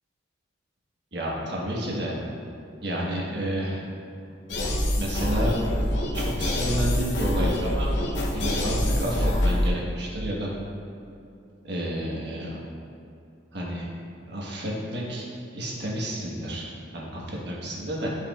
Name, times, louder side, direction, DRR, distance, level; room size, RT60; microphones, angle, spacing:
voice 1, 1.1-2.2 2.8-3.8 5.0-5.5 6.1-7.9 8.3-10.5 11.6-12.5 13.5-13.9 14.3-15.2 15.5-16.7 16.9-18.1, equal, 65° right, -4 dB, 1.4 m, -30 dB
sound 1, 4.5-9.7, left 1 dB, 70° left, 0.8 m, -25 dB
11.0 x 5.0 x 2.4 m, 2.6 s
head